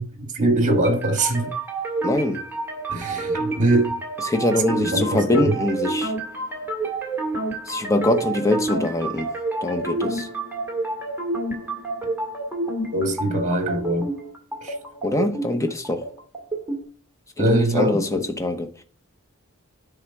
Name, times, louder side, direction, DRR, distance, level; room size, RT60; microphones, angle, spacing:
voice 1, 0.0-1.5 2.9-4.0 4.8-5.5 12.9-14.1 14.6-14.7 17.4-18.2, right 1 dB, 35° right, 1.8 m, -22 dB
sound 1, 0.8-16.8, right 2 dB, 10° right, 2.1 m, -29 dB
voice 2, 2.0-2.4 4.2-6.1 7.7-9.3 9.6-10.3 15.0-16.0 17.4-18.8, left 1 dB, 15° left, 0.9 m, -23 dB
9.9 x 3.6 x 6.0 m
head